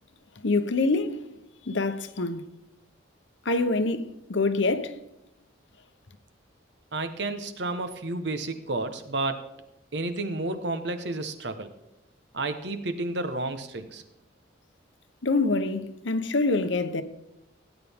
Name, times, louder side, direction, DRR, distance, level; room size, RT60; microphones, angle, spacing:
voice 1, 0.4-1.2 1.7-2.4 3.4-5.0 15.2-17.0, left 3 dB, 70° left, 0.9 m, -25 dB
voice 2, 6.9-9.4 9.9-11.7 12.3-14.0, right 2 dB, 60° right, 1.1 m, -31 dB
17.5 x 9.2 x 3.6 m
head